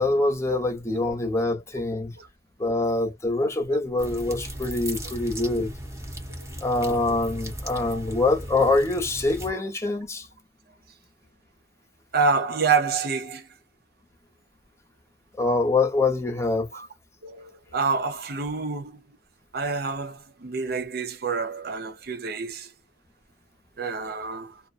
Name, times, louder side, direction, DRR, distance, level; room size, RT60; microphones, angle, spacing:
voice 1, 0.0-2.1 2.6-5.7 6.6-10.3 15.4-16.7, left 2 dB, 15° left, 0.8 m, -24 dB
sound 1, 4.0-9.5, right 1 dB, 15° right, 1.0 m, -37 dB
voice 2, 12.1-13.5 16.7-16.9 17.2-19.0 19.5-22.7 23.8-24.6, right 4 dB, 60° right, 0.6 m, -27 dB
2.4 x 2.2 x 2.5 m
head